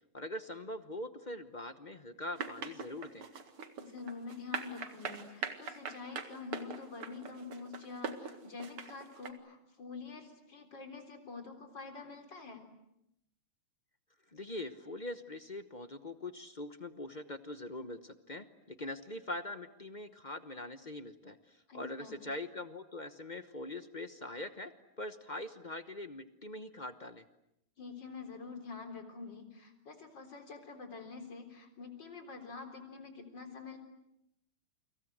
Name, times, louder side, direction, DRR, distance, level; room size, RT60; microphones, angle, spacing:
voice 1, 0.1-3.2 14.3-27.2, left 1 dB, 35° left, 10 dB, 0.8 m, -43 dB
sound 1, 2.4-9.3, right 6 dB, 80° right, 2.8 m, -41 dB
voice 2, 3.8-12.6 21.7-22.2 27.8-33.8, left 4 dB, 55° left, 6 dB, 4.5 m, -46 dB
29.5 x 25.0 x 8.0 m, 0.81 s
omnidirectional pair, 2.4 m